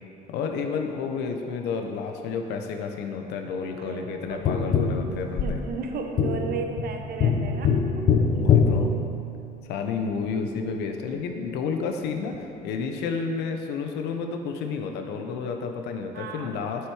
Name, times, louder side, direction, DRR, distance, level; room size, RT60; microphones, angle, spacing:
voice 1, 0.3-5.6 8.3-8.9 9.6-16.9, left 5 dB, 85° left, 5 dB, 0.8 m, -31 dB
voice 2, 3.8-4.4 5.4-8.1 16.1-16.6, right 4 dB, 65° right, 3 dB, 1.0 m, -34 dB
Tap, 4.5-9.7 12.3-12.4, left 5 dB, 55° left, 0.8 m, -24 dB
7.9 x 6.3 x 4.8 m, 2.7 s
cardioid pair, 110°, 17 cm